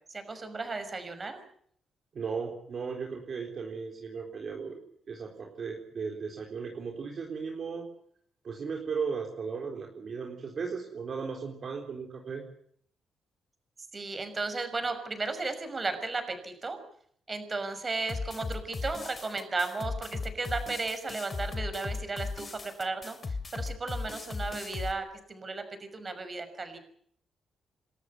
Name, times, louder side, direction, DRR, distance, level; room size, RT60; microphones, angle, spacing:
voice 1, 0.1-1.4 13.9-16.8 17.3-26.8, right 3 dB, 30° right, 8 dB, 5.9 m, -35 dB
voice 2, 2.1-7.9 8.4-12.4, right 5 dB, 50° right, 1 dB, 3.8 m, -36 dB
sound 1, 18.1-24.9, left 4 dB, 35° left, 2.7 m, -37 dB
29.0 x 13.0 x 9.8 m, 0.65 s
cardioid pair, 85°, 0 cm